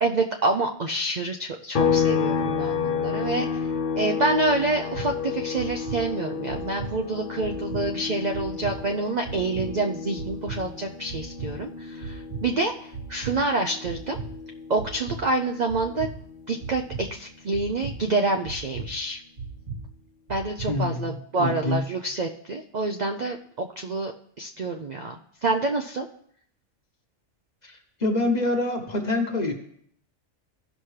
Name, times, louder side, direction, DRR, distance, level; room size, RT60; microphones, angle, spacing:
voice 1, 0.0-3.7 4.0-14.2 14.7-16.1 16.5-19.2 20.3-26.1, right 2 dB, 50° right, 3 dB, 0.5 m, -27 dB
sound 1, 1.7-15.3 15.6-17.8, left 6 dB, 50° left, 0.7 m, -31 dB
sound 2, 4.9-5.1 5.6-6.0 6.5-6.9 7.4-7.8 8.3-8.7 9.2-9.7 10.2-10.6 11.1-11.5 12.0-12.4 12.9-13.3 13.8-14.3 14.8-15.2 15.7-16.1 16.6-17.0 17.5-17.9 18.4-18.9 19.4-19.8 20.3-20.7, right 4 dB, 85° right, 2.6 m, -35 dB
voice 2, 20.7-22.0 27.6-29.5, left 2 dB, 35° left, 3 dB, 1.2 m, -26 dB
16.0 x 5.8 x 3.2 m, 0.65 s
omnidirectional pair, 1.4 m